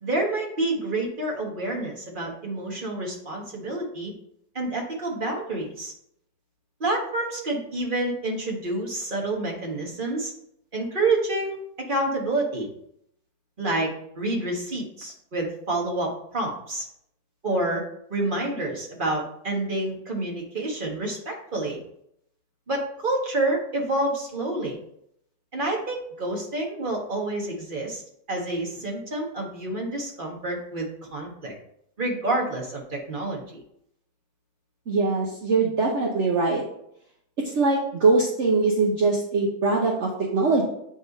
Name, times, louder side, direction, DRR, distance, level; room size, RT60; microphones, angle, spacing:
voice 1, 0.0-4.1 4.5-5.9 6.8-10.3 10.7-11.6 11.9-12.7 13.6-16.9 17.4-17.8 18.1-21.8 22.7-24.8 25.5-28.0 28.3-31.5 32.0-33.4, right 2 dB, 35° right, 0 dB, 1.5 m, -28 dB
voice 2, 34.9-36.6 37.4-40.6, right 3 dB, 55° right, -2 dB, 1.2 m, -22 dB
8.9 x 3.5 x 4.0 m, 0.72 s
omnidirectional pair, 1.6 m